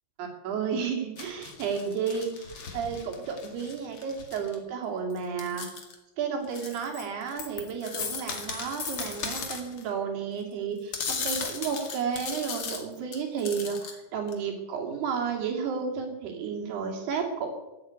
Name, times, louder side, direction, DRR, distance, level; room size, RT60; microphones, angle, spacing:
voice 1, 0.2-5.7 6.2-17.5, right 6 dB, 65° right, 2 dB, 4.5 m, -32 dB
sound 1, 1.2-4.5 5.1-5.9 6.4-9.8 10.9-13.9 14.3-14.4, left 5 dB, 45° left, 2.0 m, -36 dB
15.5 x 8.3 x 9.5 m, 1.0 s
omnidirectional pair, 5.3 m